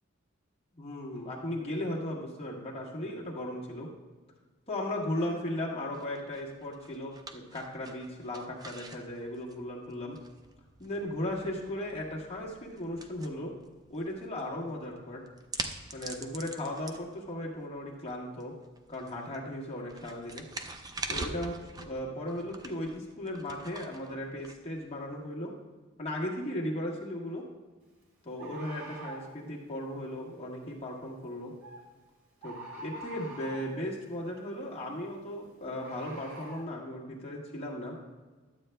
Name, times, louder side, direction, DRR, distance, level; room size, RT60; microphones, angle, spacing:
voice 1, 0.8-3.9 4.7-10.2 10.8-13.5 13.9-15.2 15.9-18.5 18.9-20.4 21.1-25.5 26.0-27.4 28.2-31.5 32.4-38.0, left 1 dB, 30° left, -3 dB, 1.4 m, -36 dB
sound 1, 5.9-25.2, right 3 dB, 20° right, 0.4 m, -45 dB
Bird, 26.7-26.8 28.4-29.3 31.6-31.8 32.4-33.8 35.8-36.6, right 2 dB, 80° right, 2.2 m, -44 dB
11.5 x 8.0 x 2.2 m, 1.3 s
head